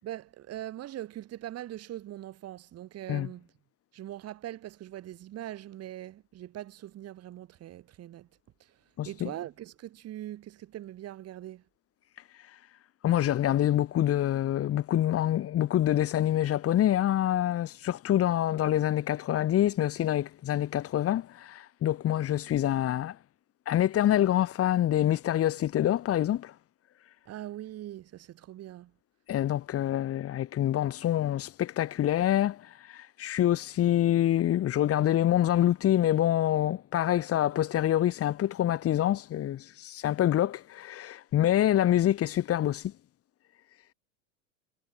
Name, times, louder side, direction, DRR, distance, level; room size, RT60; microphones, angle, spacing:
voice 1, 0.0-3.5 3.9-8.3 8.6-8.8 9.0-11.6 27.3-28.9, right 13 dB, 40° right, 7.7 m, -41 dB
voice 2, 9.0-9.3 13.0-23.2 23.7-26.5 29.3-42.9, left 12 dB, 35° left, 5.6 m, -26 dB
hypercardioid pair, 110°, 38 cm